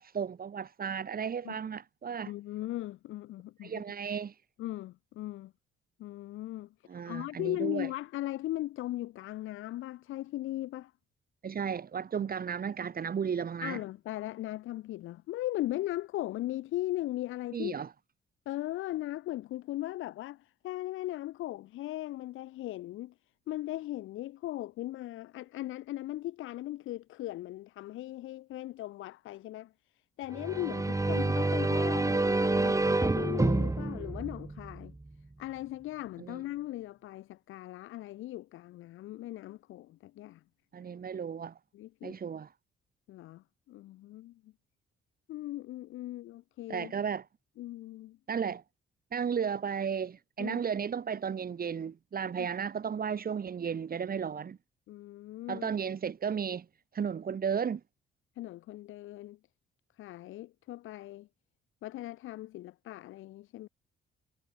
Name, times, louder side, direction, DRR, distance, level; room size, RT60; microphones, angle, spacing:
voice 1, 0.0-2.3 3.6-4.3 6.9-7.9 11.4-13.8 17.5-17.9 36.2-36.4 40.7-41.6 42.0-42.5 46.7-47.2 48.3-48.6 49.1-54.6 55.5-56.6 56.9-57.8, right 7 dB, 50° right, 4.8 m, -34 dB
voice 2, 2.3-3.8 4.6-5.5 6.0-10.9 13.6-17.8 18.5-23.1 23.5-29.7 30.2-34.9 35.4-40.4 41.7-42.2 43.1-44.5 45.3-46.9 47.6-48.2 50.4-50.6 52.4-52.5 54.9-55.7 58.4-59.4 60.0-61.3 61.8-63.7, left 15 dB, 90° left, 7.2 m, -38 dB
sound 1, 30.3-35.1, right 2 dB, 15° right, 3.1 m, -28 dB
cardioid pair, 90°, 20 cm